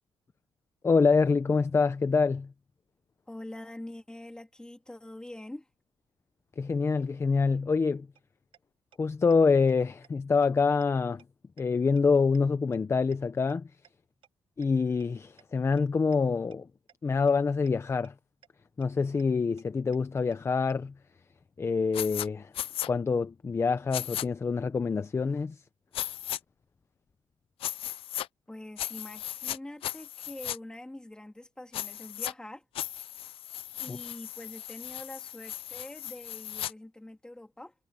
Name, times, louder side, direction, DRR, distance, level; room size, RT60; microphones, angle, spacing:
voice 1, 0.8-2.5 6.6-8.1 9.0-11.2 11.6-13.7 14.6-16.7 17.0-18.1 18.8-20.9 21.6-22.5 22.9-25.6 33.9-34.0, left 4 dB, 30° left, 0.8 m, -26 dB
voice 2, 3.3-5.7 28.5-32.6 33.8-37.7, left 1 dB, 10° left, 3.4 m, -44 dB
sound 1, 8.1-8.2 8.5-8.6 8.9-9.0 9.3-9.4 9.7-9.8 10.0-10.1 10.4-10.5 10.8-10.9 11.2-11.3 11.6-11.7 12.0-12.1 12.3-12.4 12.7-12.8 13.1-13.2 13.5-13.6 13.8-13.9 14.2-14.3 14.6-14.7 15.0-15.1 15.4-15.5 15.8-15.9 16.1-16.2 16.5-16.6 16.9-17.0 17.3-17.4 17.7-17.8 18.0-18.1 18.4-18.5 18.8-18.9 19.2-19.3 19.6-19.7 19.9-20.0 20.3-20.4 20.7-20.8, right 10 dB, 75° right, 4.8 m, -57 dB
sound 2, 21.9-22.3 22.5-22.9 23.9-24.3 25.9-26.4 27.6-28.3 28.8-29.6 29.8-30.6 31.7-32.3 32.8-36.7, left 13 dB, 85° left, 0.6 m, -36 dB
cardioid pair, 115°, 9 cm